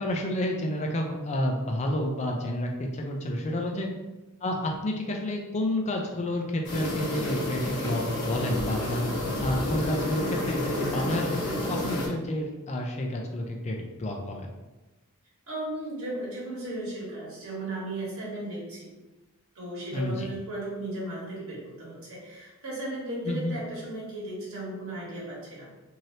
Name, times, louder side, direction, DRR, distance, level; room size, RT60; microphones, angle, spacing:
voice 1, 0.0-3.9 4.4-9.1 9.4-14.5 19.9-20.3 23.3-23.6, left 1 dB, 30° left, 1 dB, 0.4 m, -30 dB
sound 1, 6.6-12.1, left 1 dB, 85° left, 0.9 m, -30 dB
voice 2, 15.5-18.9 19.5-25.7, right 1 dB, 65° right, -6 dB, 1.3 m, -36 dB
3.2 x 2.7 x 2.7 m, 1.1 s
head